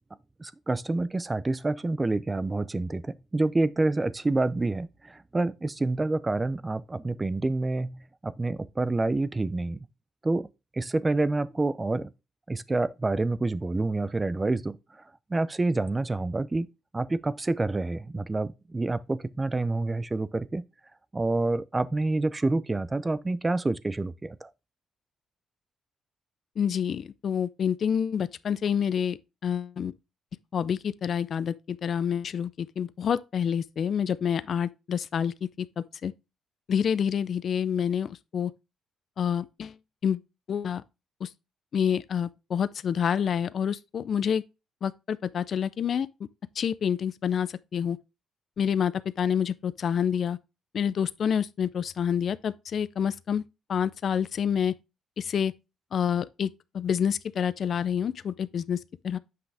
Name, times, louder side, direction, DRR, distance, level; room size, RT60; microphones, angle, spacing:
voice 1, 0.4-9.9 10.2-12.1 12.5-14.8 15.3-16.7 16.9-20.6 21.1-24.5, right 2 dB, 20° right, 0.5 m, -28 dB
voice 2, 26.6-29.9 30.5-36.1 36.7-38.5 39.2-39.8 40.0-40.2 40.5-40.8 41.2-41.3 41.7-44.4 44.8-46.3 46.6-48.0 48.6-50.4 50.7-53.4 53.7-54.8 55.2-55.5 55.9-56.5 56.7-59.2, left 8 dB, 55° left, 0.4 m, -28 dB
7.7 x 5.8 x 3.4 m
cardioid pair, 90°, 0 cm